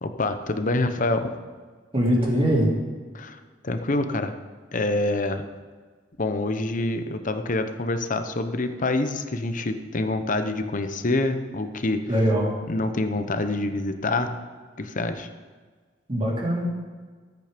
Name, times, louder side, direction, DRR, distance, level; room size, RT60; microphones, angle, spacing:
voice 1, 0.0-1.3 3.1-4.3 4.7-5.4 6.2-12.1 12.7-14.4 14.8-15.3, left 2 dB, 45° left, 9 dB, 0.8 m, -26 dB
voice 2, 1.9-2.7 12.1-12.5 16.1-16.7, equal, 30° right, -3 dB, 2.9 m, -22 dB
14.0 x 8.5 x 5.1 m, 1.5 s
head